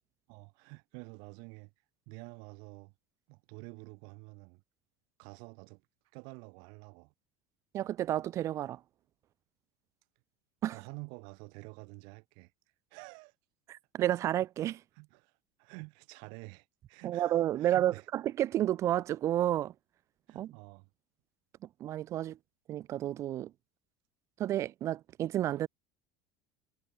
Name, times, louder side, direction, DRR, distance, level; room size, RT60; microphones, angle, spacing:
voice 1, 0.3-1.7 2.1-2.9 3.3-4.6 5.2-5.8 6.1-7.1 10.7-12.5 12.9-13.3 14.9-18.1 20.3-20.9, right 35 dB, 65° right, 1.4 m, -49 dB
voice 2, 7.7-8.8 10.6-10.8 13.7-14.8 17.0-19.7 20.3-20.5 21.8-22.4 22.7-23.5 24.4-25.7, right 12 dB, 35° right, 0.5 m, -31 dB
supercardioid pair, 135°, 8 cm